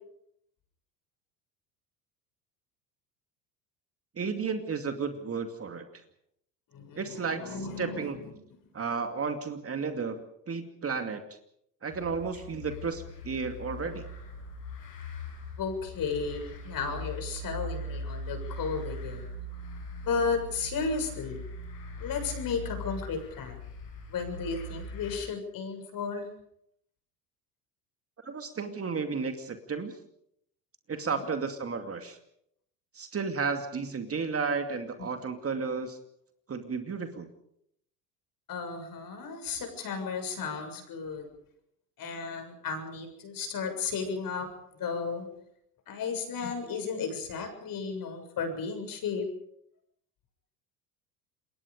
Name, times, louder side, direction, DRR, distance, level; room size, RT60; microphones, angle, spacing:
voice 1, 4.2-5.9 7.0-8.2 8.7-11.2 11.8-14.0 28.2-30.0 30.9-32.2 32.9-36.0 36.5-37.3, right 5 dB, 30° right, 6 dB, 2.5 m, -33 dB
voice 2, 6.7-8.3 15.6-19.3 20.0-21.4 22.0-23.6 24.1-26.3 31.0-31.3 38.5-41.3 42.0-44.5 44.8-45.3 45.9-49.3, left 5 dB, 45° left, 6 dB, 7.2 m, -34 dB
sound 1, 11.9-25.2, left 1 dB, 85° left, 7.3 m, -40 dB
27.5 x 22.5 x 5.2 m, 0.75 s
hypercardioid pair, 75°, 48 cm